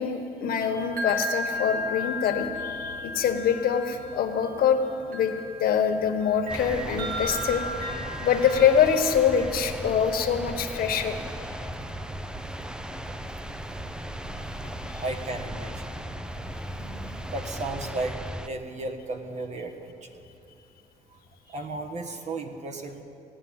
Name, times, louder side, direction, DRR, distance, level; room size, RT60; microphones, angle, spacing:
voice 1, 0.0-4.8 5.1-5.3 5.6-7.6 8.2-11.2 16.8-17.1, left 7 dB, 60° left, 6 dB, 1.4 m, -24 dB
sound 1, 0.6-9.5, left 2 dB, 60° right, 2.7 m, -35 dB
sound 2, 6.5-18.5, right 1 dB, 5° right, 0.6 m, -37 dB
voice 2, 14.3-14.7 15.0-15.9 17.3-18.2 18.4-19.9 21.5-23.0, right 2 dB, 45° right, 5 dB, 1.5 m, -34 dB
16.5 x 9.7 x 8.8 m, 2.6 s
cardioid pair, 110°, 17 cm